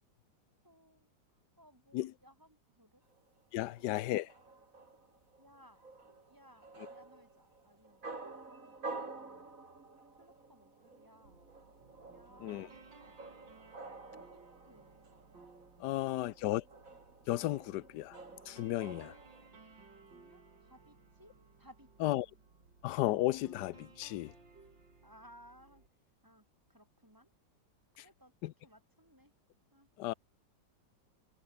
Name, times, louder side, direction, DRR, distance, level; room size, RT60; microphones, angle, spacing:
voice 1, 0.6-3.0 3.6-4.3 5.4-5.8 6.3-9.5 10.2-11.4 12.1-13.4 14.3-14.9 15.8-16.6 20.1-22.2 25.0-25.8 26.2-27.3 27.9-29.3 29.7-29.9, equal, 10° right, 8.0 m, -62 dB
sound 1, 3.1-19.5, right 3 dB, 45° right, 3.9 m, -50 dB
voice 2, 3.5-4.3 12.4-12.7 15.8-16.6 17.3-18.2 18.5-19.1 22.0-22.3 22.8-24.3 28.4-28.5 30.0-30.1, left 15 dB, 70° left, 1.2 m, -34 dB
sound 2, 11.2-25.9, right 4 dB, 75° right, 4.5 m, -60 dB
omnidirectional pair, 2.0 m